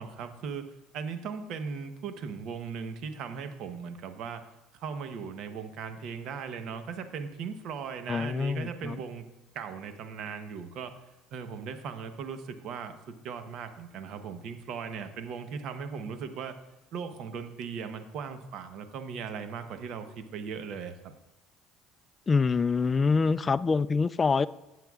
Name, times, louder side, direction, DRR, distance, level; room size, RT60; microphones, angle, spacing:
voice 1, 0.0-4.4 4.7-9.2 9.5-10.9 11.3-16.6 16.9-21.1, right 6 dB, 60° right, 8 dB, 0.9 m, -38 dB
voice 2, 8.1-9.0 22.3-24.5, left 4 dB, 25° left, 16 dB, 0.3 m, -25 dB
18.0 x 7.7 x 2.4 m, 0.96 s
supercardioid pair, 100°, 0 cm